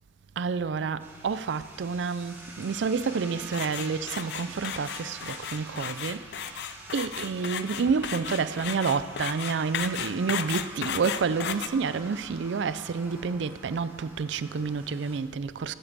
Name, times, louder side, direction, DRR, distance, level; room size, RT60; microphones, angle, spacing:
voice 1, 0.4-6.6 6.9-15.7, right 5 dB, 75° right, 0.4 m, -29 dB
sound 1, 1.0-15.2, right 1 dB, 15° right, 1.6 m, -46 dB
sound 2, 3.5-11.7, left 9 dB, 65° left, 0.4 m, -34 dB
13.5 x 7.7 x 4.0 m
head